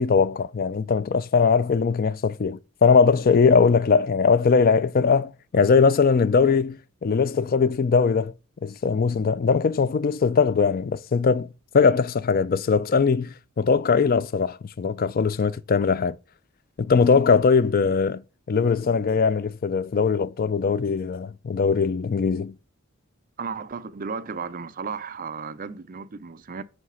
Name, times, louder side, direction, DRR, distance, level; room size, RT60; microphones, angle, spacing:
voice 1, 0.0-8.3 8.6-16.2 16.8-18.2 18.5-22.5, left 5 dB, 45° left, 0.4 m, -21 dB
voice 2, 23.4-26.6, right 5 dB, 40° right, 0.5 m, -34 dB
9.6 x 3.3 x 5.5 m
head